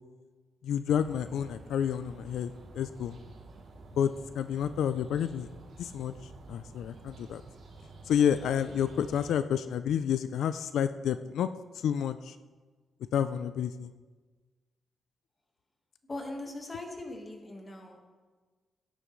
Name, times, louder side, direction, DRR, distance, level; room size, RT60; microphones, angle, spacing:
voice 1, 0.6-3.2 4.0-5.5 5.8-7.4 8.1-11.5 11.7-12.4 13.1-13.9, left 8 dB, 85° left, 11 dB, 0.4 m, -30 dB
sound 1, 0.9-9.3, right 3 dB, 70° right, 3.3 m, -50 dB
voice 2, 16.1-18.0, left 2 dB, 20° left, 2 dB, 1.5 m, -40 dB
17.0 x 10.0 x 3.1 m, 1.4 s
wide cardioid pair, 175°, 0 cm